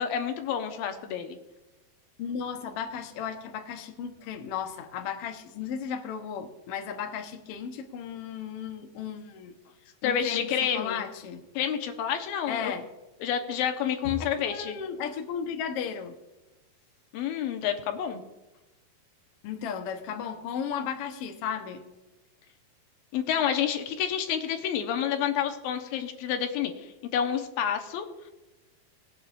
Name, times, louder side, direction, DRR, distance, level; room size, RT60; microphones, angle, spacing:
voice 1, 0.0-1.4 10.0-11.0 11.6-12.7 13.2-14.8 17.1-18.2 23.1-28.1, left 8 dB, 85° left, 5 dB, 2.8 m, -29 dB
voice 2, 2.2-9.5 10.0-11.4 12.5-12.9 14.0-16.1 19.4-21.8, left 7 dB, 70° left, 5 dB, 1.4 m, -35 dB
20.5 x 8.7 x 2.5 m, 1.1 s
omnidirectional pair, 4.1 m